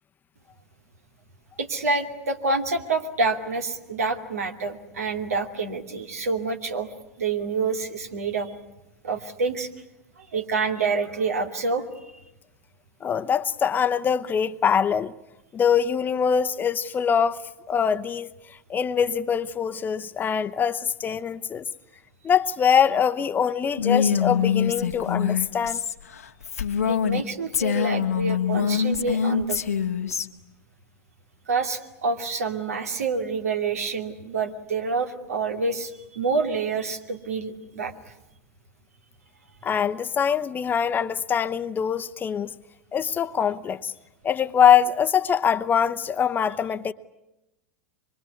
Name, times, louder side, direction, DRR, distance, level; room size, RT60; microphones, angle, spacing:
voice 1, 1.6-6.9 7.2-8.5 9.0-9.7 10.2-11.8 26.9-29.6 31.5-37.9, right 4 dB, 80° right, 2.7 m, -27 dB
voice 2, 13.0-15.1 15.5-17.4 17.7-18.3 18.7-21.6 22.2-25.8 39.6-42.5 42.9-43.9 44.2-46.9, left 7 dB, 25° left, 0.9 m, -23 dB
Female speech woman speaking, 23.8-27.2 27.5-30.3, left 7 dB, 90° left, 1.5 m, -24 dB
25.0 x 23.5 x 9.6 m
hypercardioid pair, 100°, 8 cm